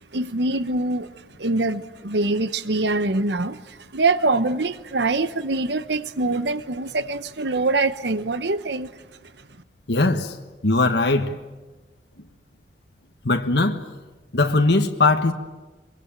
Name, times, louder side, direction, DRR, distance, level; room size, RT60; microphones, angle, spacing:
voice 1, 0.1-1.1 1.4-8.9, right 2 dB, 75° right, 1.0 m, -24 dB
voice 2, 9.9-10.4 10.6-11.4 13.2-13.8 14.3-15.3, left 2 dB, 70° left, 1.5 m, -20 dB
24.0 x 23.0 x 9.0 m
head